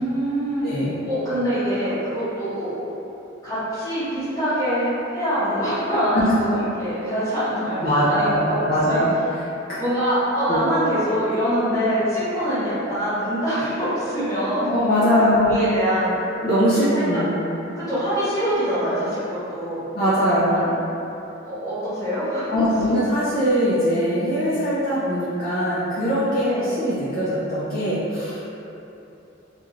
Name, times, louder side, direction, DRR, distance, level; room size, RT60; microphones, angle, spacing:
voice 1, 0.0-0.7 1.1-2.8 3.4-8.6 8.9-9.0 9.8-14.7 15.4-16.2 16.9-17.0 17.7-19.8 20.5-20.7 21.4-22.5 22.8-22.9 26.4-26.7, equal, 20° left, -19 dB, 0.9 m, -24 dB
voice 2, 0.6-1.0 6.1-6.6 7.8-9.5 10.5-10.6 14.6-15.5 16.4-17.3 19.9-20.6 22.5-28.5, equal, 50° left, -12 dB, 0.5 m, -21 dB
2.4 x 2.3 x 3.1 m, 2.9 s
head